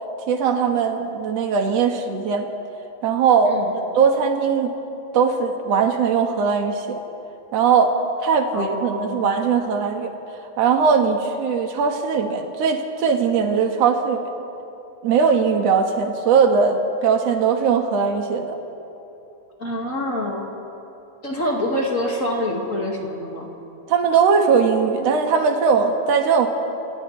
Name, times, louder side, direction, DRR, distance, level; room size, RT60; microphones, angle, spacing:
voice 1, 0.3-2.5 3.0-3.5 3.9-4.7 5.1-7.0 7.5-10.1 10.6-14.3 15.0-18.6 23.9-26.5, right 6 dB, 55° right, 3 dB, 2.2 m, -19 dB
voice 2, 8.5-9.4 19.6-20.5 21.2-23.5, left 1 dB, 30° left, -2 dB, 1.7 m, -26 dB
30.0 x 27.0 x 3.3 m, 2.9 s
omnidirectional pair, 4.3 m